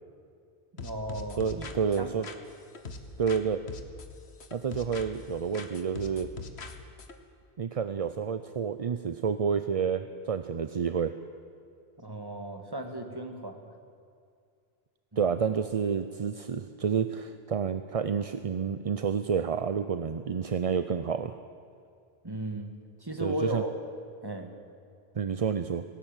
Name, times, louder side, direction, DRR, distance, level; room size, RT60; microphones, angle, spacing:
voice 1, 0.7-1.7 2.0-2.1 12.0-13.7 15.1-15.3 22.2-22.7 23.0-23.7 24.2-24.5, right 1 dB, 20° right, 4 dB, 2.0 m, -36 dB
sound 1, 0.8-3.4 3.7-5.3 5.5-7.1, left 3 dB, 90° left, 1.6 m, -42 dB
voice 2, 1.4-2.3 3.2-3.6 4.5-6.3 7.6-11.1 15.2-21.4 23.2-23.6 25.1-25.8, right 6 dB, 40° right, 10 dB, 0.6 m, -29 dB
19.0 x 17.5 x 9.0 m, 2.3 s
omnidirectional pair, 1.1 m